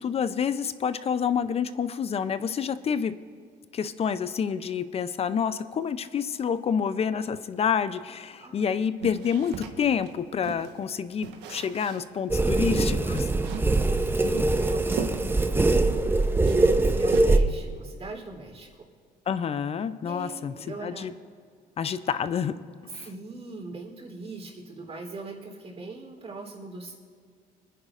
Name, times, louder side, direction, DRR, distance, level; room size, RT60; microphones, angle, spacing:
voice 1, 0.0-3.1 3.7-13.3 19.3-20.5 20.8-21.1 21.8-22.5 22.9-23.1, left 7 dB, 35° left, 13 dB, 0.5 m, -28 dB
voice 2, 8.4-8.8 9.1-9.2 13.5-18.7 20.0-21.1 23.0-27.0, right 3 dB, 35° right, 0 dB, 3.4 m, -41 dB
sound 1, 9.0-10.8 11.2-12.2 12.4-12.5 12.8-13.7 14.2-16.2 16.4-17.6, right 7 dB, 85° right, 1.2 m, -38 dB
sound 2, 12.3-17.4, right 2 dB, 10° right, 0.6 m, -23 dB
27.5 x 10.0 x 2.5 m, 2.1 s
cardioid pair, 110°, 17 cm